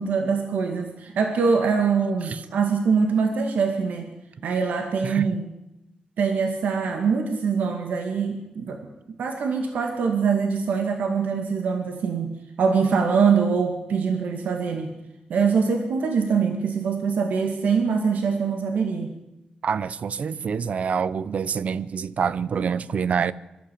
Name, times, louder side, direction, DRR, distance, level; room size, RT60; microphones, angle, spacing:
voice 1, 0.0-4.1 4.4-5.4 6.2-8.8 9.2-12.3 12.6-14.9 15.3-19.1, right 5 dB, 90° right, 2.2 m, -23 dB
voice 2, 19.6-23.3, right 6 dB, 55° right, 0.7 m, -26 dB
24.0 x 13.5 x 8.5 m
wide cardioid pair, 130°, 3 cm